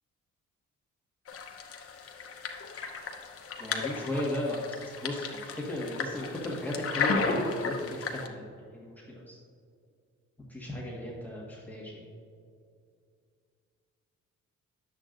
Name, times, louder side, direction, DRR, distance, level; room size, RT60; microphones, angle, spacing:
sound 1, 1.3-8.3, left 4 dB, 50° left, 0.9 m, -34 dB
voice 1, 3.6-9.4 10.5-12.0, left 1 dB, 5° left, -5 dB, 1.5 m, -35 dB
9.7 x 7.5 x 2.6 m, 2.3 s
cardioid pair, 90°, 30 cm